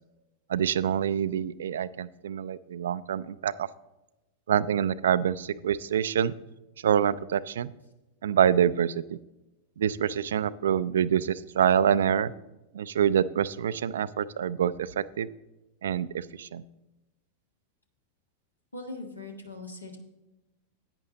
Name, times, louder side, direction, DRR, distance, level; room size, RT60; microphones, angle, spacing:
voice 1, 0.5-3.7 4.5-6.3 6.8-7.7 8.2-9.2 9.8-12.3 12.7-15.3 15.8-16.6, right 9 dB, 65° right, 17 dB, 0.3 m, -26 dB
voice 2, 18.7-20.0, left 2 dB, 80° left, 4 dB, 1.4 m, -40 dB
10.5 x 9.1 x 3.9 m, 1.0 s
figure-of-eight pair, 90°, 0 cm